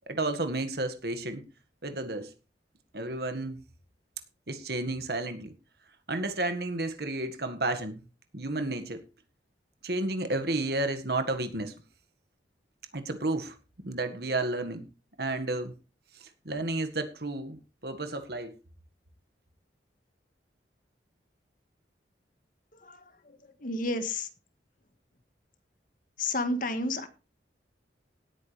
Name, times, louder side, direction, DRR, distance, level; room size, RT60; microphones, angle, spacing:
voice 1, 0.1-1.4 1.8-2.3 2.9-3.6 4.5-5.5 6.1-8.0 8.3-9.0 9.8-11.7 12.9-13.6 13.8-14.9 15.2-15.7 16.5-18.5, right 2 dB, 60° right, 8 dB, 1.8 m, -31 dB
voice 2, 22.7-24.3 26.2-27.1, left 2 dB, 50° left, 9 dB, 1.7 m, -32 dB
17.5 x 9.1 x 3.4 m, 0.31 s
head